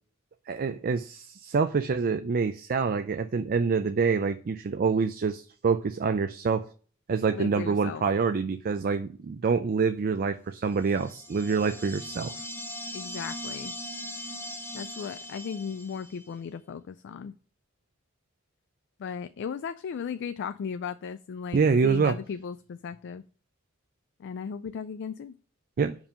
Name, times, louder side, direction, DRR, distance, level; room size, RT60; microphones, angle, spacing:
voice 1, 0.5-6.7 7.1-12.3 21.5-22.1 25.8-26.0, right 5 dB, 45° right, 9 dB, 0.4 m, -26 dB
voice 2, 7.3-8.0 12.9-13.7 14.2-14.3 14.7-17.3 19.0-23.2 24.2-25.4, left 6 dB, 60° left, 12 dB, 0.3 m, -36 dB
sound 1, 10.9-16.3, left 1 dB, 10° left, 0.6 m, -40 dB
5.4 x 4.9 x 5.1 m, 0.41 s
head